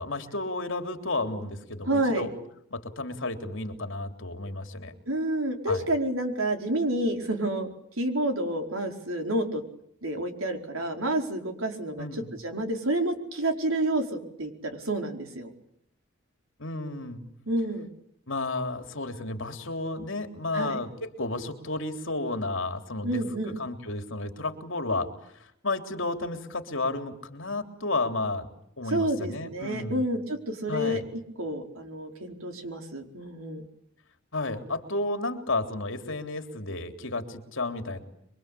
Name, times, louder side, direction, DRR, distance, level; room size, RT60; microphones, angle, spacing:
voice 1, 0.0-2.3 2.7-4.9 5.7-5.8 12.0-12.3 16.6-17.2 18.3-25.1 25.4-28.5 28.8-30.0 30.7-31.0 34.3-38.0, left 2 dB, 65° left, 7 dB, 3.6 m, -32 dB
voice 2, 1.8-2.3 5.1-7.7 8.0-9.6 10.0-15.5 17.5-17.9 20.5-20.8 23.0-23.6 28.9-33.6, right 1 dB, 85° right, 5 dB, 4.8 m, -29 dB
27.0 x 24.0 x 8.6 m, 0.73 s
head